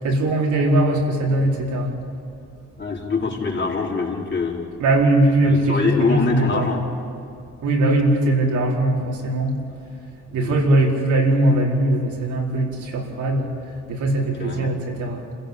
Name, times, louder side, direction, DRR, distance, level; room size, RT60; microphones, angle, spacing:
voice 1, 0.0-1.9 4.8-6.7 7.6-9.5 10.3-13.5 13.9-15.2, right 1 dB, 80° right, -2 dB, 4.7 m, -20 dB
voice 2, 2.8-4.6 5.4-6.9 10.3-10.6 14.4-14.7, left 4 dB, 35° left, -2 dB, 4.8 m, -24 dB
27.5 x 15.5 x 8.7 m, 2.6 s
cardioid pair, 90°, 30 cm